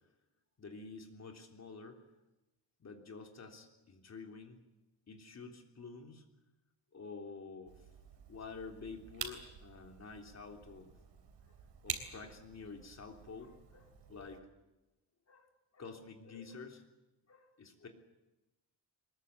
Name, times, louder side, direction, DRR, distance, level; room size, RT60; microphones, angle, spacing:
voice 1, 0.6-2.0 2.8-4.6 5.1-6.2 6.9-7.8 8.3-10.9 11.5-11.6 11.8-14.5 15.3-15.5 15.7-16.8 17.3-17.9, left 4 dB, 40° left, 3 dB, 3.4 m, -49 dB
sound 1, 7.7-14.4, right 7 dB, 85° right, 3.4 m, -48 dB
23.0 x 20.5 x 8.4 m, 1.0 s
wide cardioid pair, 155°, 41 cm